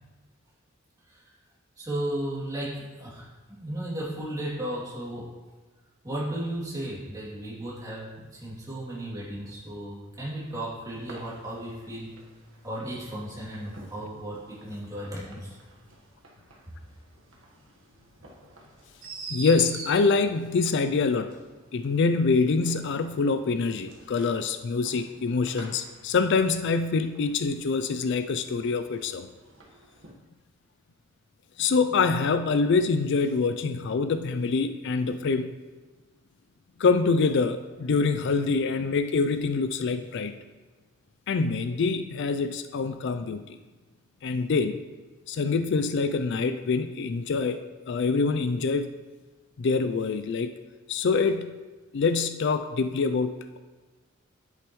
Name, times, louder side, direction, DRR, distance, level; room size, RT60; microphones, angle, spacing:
voice 1, 1.8-5.3 6.0-12.1 12.6-15.6, right 1 dB, 15° right, -7 dB, 2.7 m, -35 dB
sound 1, 10.9-30.1, right 3 dB, 70° right, 1.4 m, -48 dB
voice 2, 19.3-21.3 21.7-29.3 31.6-35.5 36.8-40.3 41.3-43.4 44.2-44.8 45.3-47.6 47.9-48.9 49.6-50.5 50.9-51.6 51.9-53.6, left 4 dB, 55° left, 10 dB, 0.4 m, -25 dB
10.0 x 8.3 x 3.1 m, 1.3 s
head